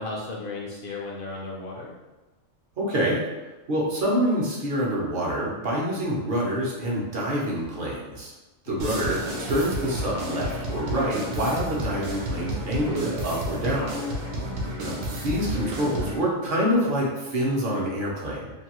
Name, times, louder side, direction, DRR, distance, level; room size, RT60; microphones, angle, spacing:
voice 1, 0.0-1.9 8.7-9.3, left 2 dB, 60° left, -3 dB, 0.6 m, -35 dB
voice 2, 2.8-3.2 3.7-8.3 8.7-13.9 14.8-14.9 15.2-18.5, equal, 50° right, -4 dB, 0.7 m, -26 dB
sound 1, 8.8-16.2, equal, 80° right, 1.0 m, -31 dB
2.6 x 2.2 x 2.9 m, 1.1 s
omnidirectional pair, 1.3 m